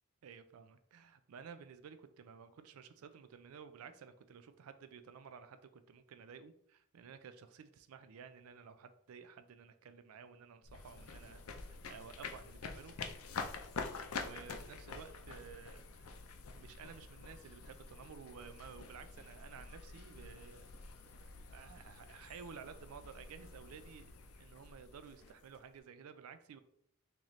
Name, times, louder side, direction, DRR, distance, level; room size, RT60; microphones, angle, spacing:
voice 1, 0.2-12.9 14.1-20.6 21.2-26.6, right 6 dB, 90° right, 10 dB, 0.4 m, -54 dB
sound 1, 10.6-25.8, left 4 dB, 85° left, 0.5 m, -48 dB
3.9 x 3.0 x 3.0 m, 0.70 s
head